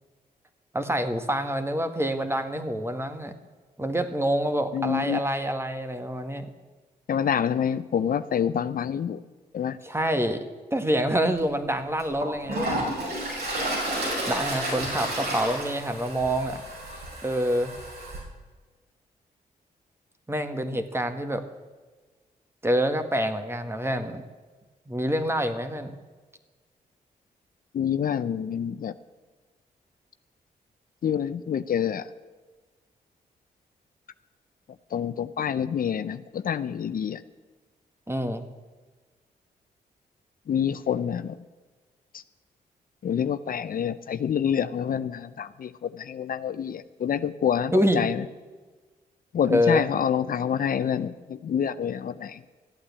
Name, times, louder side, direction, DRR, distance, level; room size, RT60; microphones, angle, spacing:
voice 1, 0.7-3.3 3.8-6.5 9.8-12.9 14.3-16.6 17.2-17.7 20.3-21.4 22.6-24.2 24.9-25.9 38.1-38.4 47.7-48.0 49.5-49.8, equal, 15° right, 8 dB, 1.7 m, -26 dB
voice 2, 4.7-5.2 7.1-9.2 9.5-9.8 27.7-28.9 31.0-32.1 34.9-37.2 40.5-41.4 42.1-42.2 43.0-48.2 49.3-52.5, left 8 dB, 60° left, 13 dB, 0.6 m, -27 dB
Toilet flush, 11.4-11.5 12.0-18.2, right 1 dB, 75° right, 5.4 m, -31 dB
14.5 x 8.6 x 8.4 m, 1.4 s
supercardioid pair, 55°, 17 cm